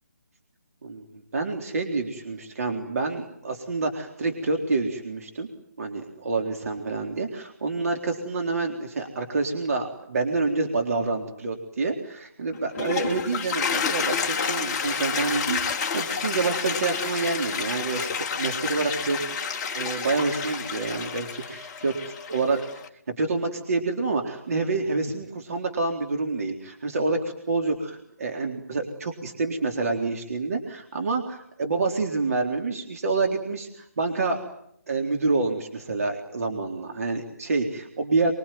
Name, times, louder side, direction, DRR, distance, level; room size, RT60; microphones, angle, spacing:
voice 1, 0.8-5.5 5.8-19.2 19.7-22.6 23.2-27.2 27.5-27.7 28.2-33.7 34.0-34.4 34.9-38.3, right 3 dB, 55° right, 3 dB, 4.0 m, -27 dB
Toilet flush, 12.5-22.9, left 6 dB, 25° left, 1.6 m, -30 dB
25.5 x 23.5 x 9.4 m, 0.72 s
figure-of-eight pair, 155°, 9 cm